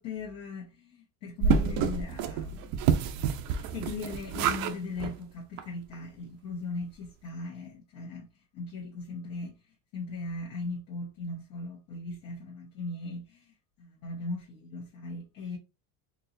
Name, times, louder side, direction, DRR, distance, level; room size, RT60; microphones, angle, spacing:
voice 1, 0.0-2.7 3.7-8.3 8.5-9.6 9.9-13.5 13.8-15.6, left 3 dB, 55° left, 1.1 m, -38 dB
sound 1, 1.4-4.7 5.0-5.1 5.6-5.7 5.9-6.0, right 6 dB, 55° right, 0.6 m, -28 dB
4.4 x 3.0 x 2.6 m
supercardioid pair, 130°, 42 cm